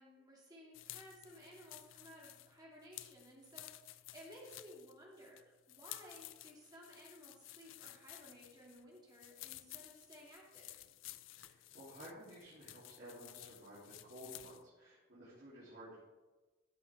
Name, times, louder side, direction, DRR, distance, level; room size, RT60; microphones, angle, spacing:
voice 1, 0.0-3.7 4.1-10.7, equal, 20° right, -4 dB, 2.5 m, -57 dB
sound 1, 0.7-14.7, left 15 dB, 65° left, 0.4 m, -54 dB
voice 2, 11.3-16.0, right 1 dB, 50° right, -10 dB, 3.1 m, -54 dB
13.5 x 7.8 x 3.6 m, 1.2 s
head